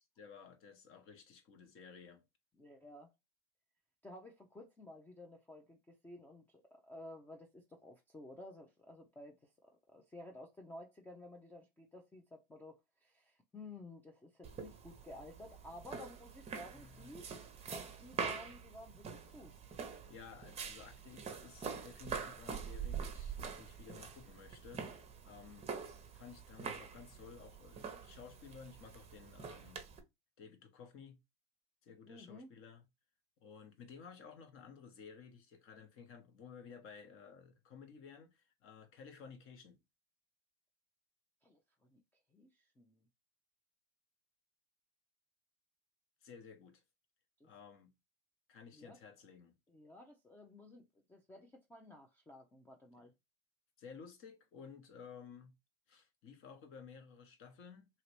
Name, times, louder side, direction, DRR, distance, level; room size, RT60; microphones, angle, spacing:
voice 1, 0.2-2.2 16.7-17.1 20.1-24.9 25.2-29.8 30.4-31.2 31.8-32.8 33.4-39.8 46.2-46.8 47.4-47.9 48.5-49.5 53.0-53.1 53.8-55.5 55.9-57.9, left 6 dB, 45° left, 0.9 m, -55 dB
voice 2, 2.6-3.1 4.0-9.4 9.6-17.3 18.0-19.6 32.1-32.5 41.4-41.6 41.9-42.0 42.3-43.0 47.4-47.5 48.7-49.0 49.7-53.1, left 1 dB, 5° left, 0.3 m, -54 dB
sound 1, 14.4-30.0, right 6 dB, 20° right, 0.7 m, -45 dB
2.9 x 2.9 x 2.9 m
supercardioid pair, 110°, 30 cm